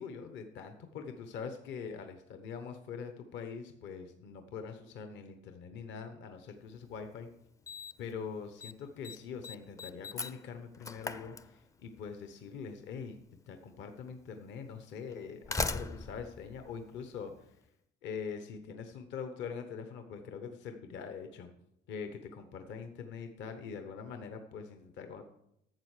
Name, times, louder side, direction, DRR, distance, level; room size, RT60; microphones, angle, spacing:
voice 1, 0.0-7.3 8.0-13.2 13.5-17.6 18.0-21.5 21.9-25.3, left 6 dB, 65° left, 7 dB, 1.0 m, -43 dB
Slam, 6.8-6.9 7.7-8.1 8.4-8.7 9.0-12.0 13.1-13.2 14.1-14.2 15.1-17.5, left 3 dB, 15° left, 0.4 m, -39 dB
12.0 x 7.3 x 4.9 m, 0.78 s
cardioid pair, 120°, 20 cm